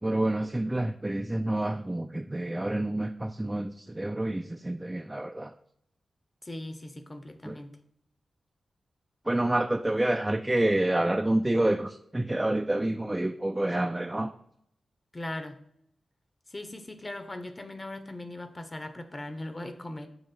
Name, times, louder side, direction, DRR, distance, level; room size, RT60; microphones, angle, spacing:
voice 1, 0.0-5.5 7.4-7.6 9.3-14.3, right 1 dB, 15° right, 6 dB, 0.3 m, -28 dB
voice 2, 6.4-7.8 15.1-15.6 16.5-20.1, left 1 dB, 25° left, 8 dB, 0.8 m, -39 dB
7.0 x 3.1 x 5.6 m, 0.73 s
cardioid pair, 80°, 0 cm